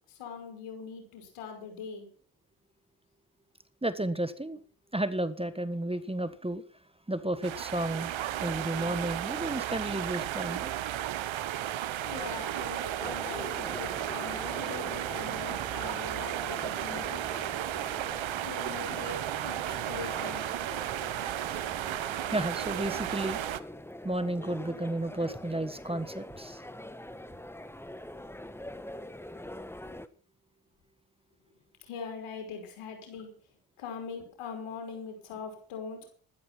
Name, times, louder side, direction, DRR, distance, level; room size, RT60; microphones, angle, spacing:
voice 1, 0.1-2.1 12.0-17.3 18.4-20.4 31.8-33.4 33.8-36.1, left 5 dB, 85° left, 4 dB, 5.6 m, -42 dB
voice 2, 3.8-4.6 4.9-6.6 7.1-10.7 22.3-23.4 24.0-26.6, right 1 dB, 10° right, 13 dB, 1.4 m, -32 dB
sound 1, 7.4-23.6, right 12 dB, 65° right, 1.1 m, -34 dB
sound 2, 13.0-30.1, left 1 dB, 5° left, 1.2 m, -44 dB
14.0 x 12.0 x 5.9 m, 0.43 s
supercardioid pair, 60°, 49 cm